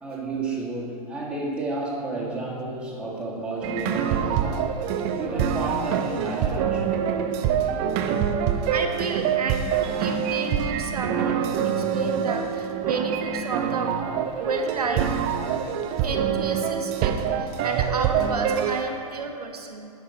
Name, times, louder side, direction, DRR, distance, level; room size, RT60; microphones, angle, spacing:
voice 1, 0.0-4.7 5.2-7.0, right 2 dB, 5° right, -5 dB, 1.8 m, -31 dB
sound 1, 2.1-3.8 6.2-7.9 10.6-12.1 14.7-16.3 18.6-19.4, right 4 dB, 45° right, 1.4 m, -42 dB
sound 2, 3.6-18.8, right 8 dB, 30° right, 0.5 m, -25 dB
voice 2, 8.7-9.7 10.0-14.0 14.4-15.1 16.0-19.9, right 4 dB, 80° right, 4 dB, 0.8 m, -31 dB
11.0 x 6.0 x 4.1 m, 2.7 s
figure-of-eight pair, 110°, 20 cm